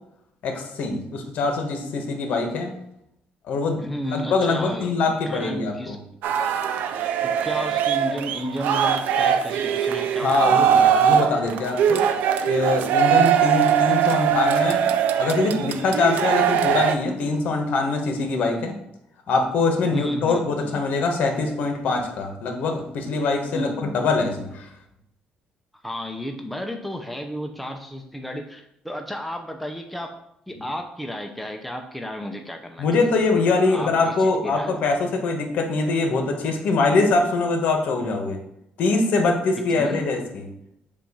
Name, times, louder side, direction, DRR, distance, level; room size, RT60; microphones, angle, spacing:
voice 1, 0.4-2.7 3.5-6.0 10.2-12.0 12.5-14.8 15.2-18.8 19.3-24.7 32.8-38.4 38.8-40.5, left 3 dB, 65° left, 3 dB, 1.2 m, -23 dB
voice 2, 3.8-6.0 7.2-11.3 19.9-20.8 23.5-24.0 25.8-30.2 30.5-33.1 33.6-34.8 39.7-40.0, equal, ahead, 3 dB, 0.6 m, -33 dB
sound 1, 6.2-17.0, right 9 dB, 85° right, 0.4 m, -21 dB
7.4 x 2.5 x 5.4 m, 0.76 s
cardioid pair, 130°, 3 cm